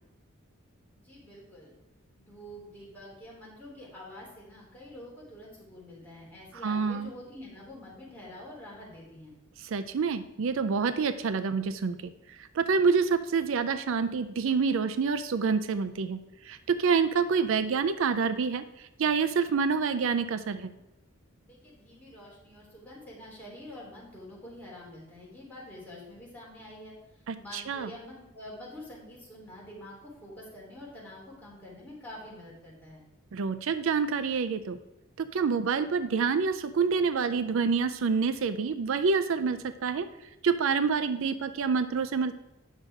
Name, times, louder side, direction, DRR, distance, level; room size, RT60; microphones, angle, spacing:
voice 1, 0.9-1.7 2.2-9.4 21.4-33.0, left 1 dB, 10° left, -6 dB, 3.4 m, -47 dB
voice 2, 6.6-7.1 9.6-20.7 27.3-27.9 33.3-34.8 35.2-40.1 40.4-42.3, right 5 dB, 65° right, 12 dB, 0.4 m, -27 dB
9.2 x 6.4 x 4.8 m, 0.96 s
head